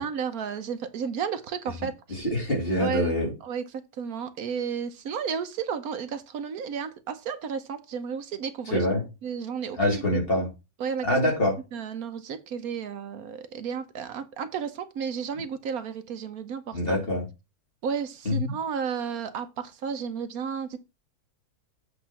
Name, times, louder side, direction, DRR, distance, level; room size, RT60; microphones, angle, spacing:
voice 1, 0.0-2.3 2.8-8.9 9.2-10.0 10.8-11.1 11.7-17.0 17.8-20.8, right 7 dB, 70° right, 1.2 m, -33 dB
voice 2, 2.1-3.3 8.7-9.0 9.8-10.5 11.0-11.6 16.7-17.2 18.2-18.5, left 1 dB, 35° left, 3.0 m, -25 dB
7.9 x 3.8 x 5.6 m
omnidirectional pair, 1.6 m